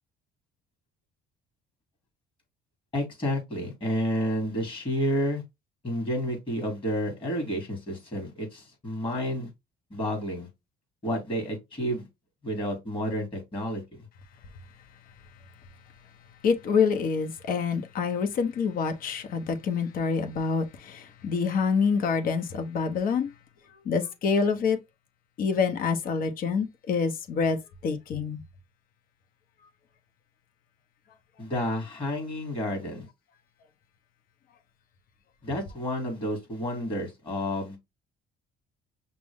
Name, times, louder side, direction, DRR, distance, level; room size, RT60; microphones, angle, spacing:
voice 1, 2.9-5.4 5.8-9.5 9.9-10.5 11.0-12.0 12.4-13.8 31.4-33.1 35.4-37.8, equal, 30° left, 2.9 m, -30 dB
voice 2, 16.4-23.3 23.8-24.8 25.4-27.6 27.8-28.4, left 5 dB, 60° left, 0.9 m, -26 dB
5.9 x 2.1 x 3.5 m
cardioid pair, 110°, 17 cm